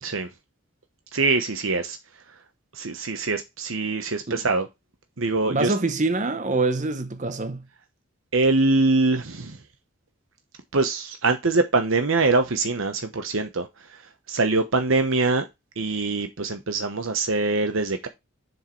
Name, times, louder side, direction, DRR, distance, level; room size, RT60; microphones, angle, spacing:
voice 1, 1.1-2.0 2.7-4.7 5.2-5.7 8.3-9.6 10.7-15.5 15.8-18.1, right 3 dB, 70° right, 1.0 m, -23 dB
voice 2, 5.5-7.6, right 3 dB, 35° right, 0.7 m, -25 dB
7.4 x 6.5 x 3.2 m
head